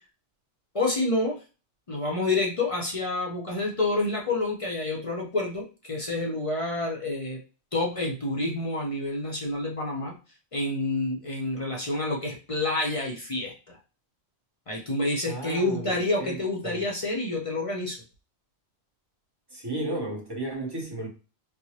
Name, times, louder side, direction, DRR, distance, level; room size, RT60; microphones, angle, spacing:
voice 1, 0.7-1.4 1.9-7.4 7.7-10.1 10.5-13.8 14.7-18.0, left 2 dB, 40° left, 0.5 m, -28 dB
voice 2, 15.3-15.9 16.2-16.4 16.6-16.9 19.5-21.1, right 2 dB, 25° right, 0.6 m, -33 dB
4.2 x 2.0 x 2.8 m
omnidirectional pair, 1.4 m